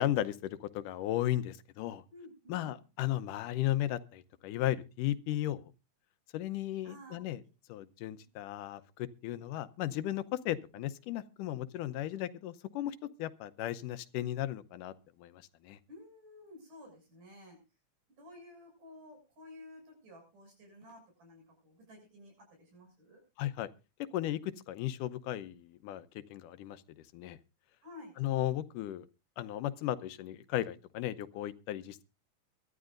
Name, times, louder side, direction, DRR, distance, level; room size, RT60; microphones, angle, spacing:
voice 1, 0.0-2.0 2.5-5.7 6.3-7.4 7.7-15.8 23.4-23.7 24.1-26.8 27.1-27.4 28.2-29.1 29.4-32.0, left 13 dB, 85° left, 12 dB, 2.4 m, -35 dB
voice 2, 2.1-2.8 6.8-7.2 15.9-17.6 18.1-23.2 27.8-28.1, left 1 dB, 85° right, 2 dB, 8.5 m, -53 dB
23.5 x 12.0 x 2.6 m, 0.30 s
omnidirectional pair, 3.6 m